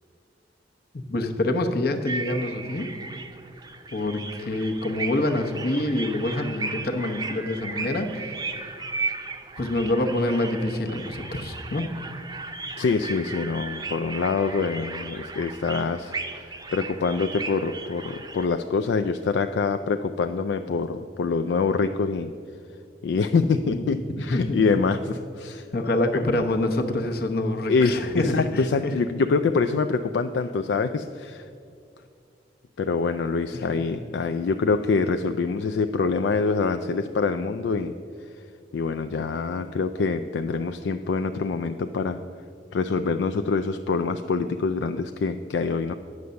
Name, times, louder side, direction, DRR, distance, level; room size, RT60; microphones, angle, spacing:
voice 1, 0.9-2.9 3.9-8.7 9.6-11.9 23.5-23.8 24.2-24.6 25.7-29.0 33.5-34.0, left 1 dB, 55° left, 4 dB, 0.9 m, -26 dB
sound 1, 2.1-18.5, right 4 dB, 20° right, 0.6 m, -36 dB
voice 2, 12.8-22.3 23.0-25.7 27.7-31.5 32.8-37.9 38.7-42.2 42.7-45.9, left 4 dB, 75° left, 8 dB, 0.3 m, -25 dB
9.5 x 6.4 x 6.8 m, 2.5 s
head